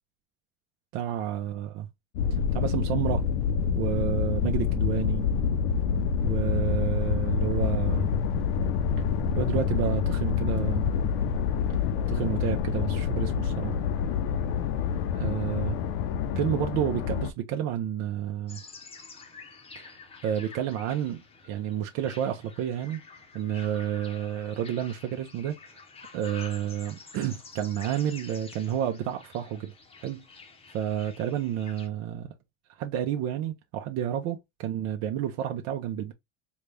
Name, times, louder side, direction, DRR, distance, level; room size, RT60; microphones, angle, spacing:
voice 1, 0.9-1.9 2.3-3.2 3.7-5.3 6.2-8.1 9.0-9.1 9.3-10.9 12.1-13.8 15.1-15.8 16.4-18.6 19.8-23.0 23.3-25.6 26.1-29.7 30.0-30.2 30.7-32.3 32.8-36.1, right 10 dB, 55° right, 0.8 m, -30 dB
sound 1, 2.1-17.3, left 7 dB, 80° left, 0.6 m, -27 dB
sound 2, 18.5-31.9, left 4 dB, 20° left, 0.8 m, -49 dB
4.0 x 2.3 x 3.3 m
cardioid pair, 135°, 31 cm